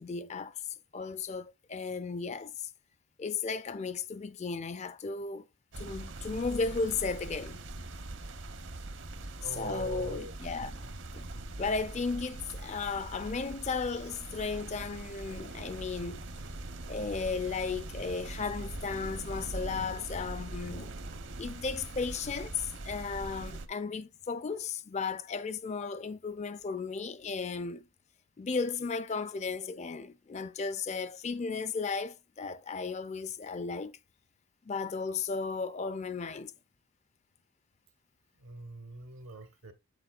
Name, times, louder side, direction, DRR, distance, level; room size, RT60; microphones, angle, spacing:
voice 1, 0.0-2.7 3.2-5.5 5.8-7.6 9.5-10.8 11.1-11.3 11.6-16.3 16.9-20.9 21.4-27.9 28.4-34.0 34.7-36.5, left 4 dB, 30° left, 0.4 m, -35 dB
sound 1, 5.7-23.7, right 2 dB, 55° right, 0.8 m, -42 dB
voice 2, 9.4-10.3 10.6-10.9 38.4-39.7, right 3 dB, 75° right, 1.1 m, -43 dB
8.0 x 6.9 x 2.4 m
head